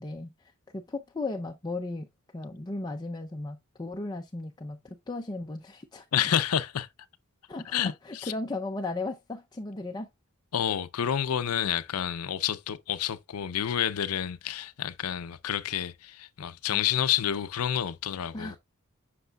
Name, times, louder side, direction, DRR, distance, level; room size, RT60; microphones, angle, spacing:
voice 1, 0.0-6.1 7.5-10.1 18.3-18.6, left 2 dB, 20° left, 0.5 m, -36 dB
voice 2, 6.1-6.9 7.7-8.3 10.5-18.6, left 9 dB, 80° left, 0.5 m, -29 dB
8.0 x 6.0 x 2.2 m
head